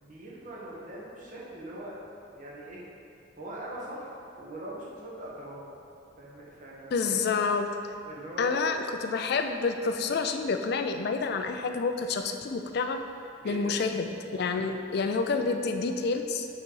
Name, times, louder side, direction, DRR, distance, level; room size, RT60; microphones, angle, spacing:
voice 1, 0.0-2.0 2.3-2.8 3.4-4.1 4.3-5.6 6.2-7.3 8.0-8.7 13.4-13.8 14.4-14.8, right 1 dB, 45° right, -6 dB, 1.2 m, -41 dB
voice 2, 6.9-7.7 8.4-13.0 13.4-14.1 14.3-16.5, left 4 dB, 55° left, 6 dB, 0.4 m, -28 dB
5.4 x 4.0 x 4.6 m, 2.5 s
head